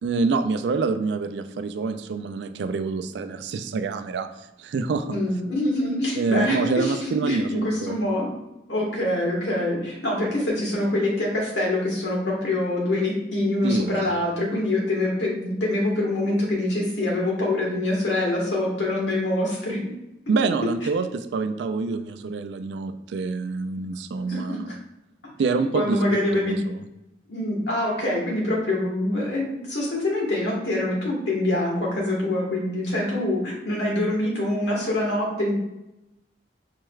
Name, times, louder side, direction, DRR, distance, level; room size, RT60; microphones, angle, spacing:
voice 1, 0.0-4.3 4.6-5.1 6.1-8.0 13.6-14.2 20.3-24.6 25.4-26.0 26.5-26.8, right 4 dB, 70° right, 9 dB, 0.3 m, -26 dB
voice 2, 5.1-8.3 8.7-19.8 24.3-24.7 25.7-26.5 27.3-35.5, left 1 dB, 80° left, -4 dB, 1.4 m, -25 dB
4.6 x 3.2 x 2.3 m, 0.92 s
head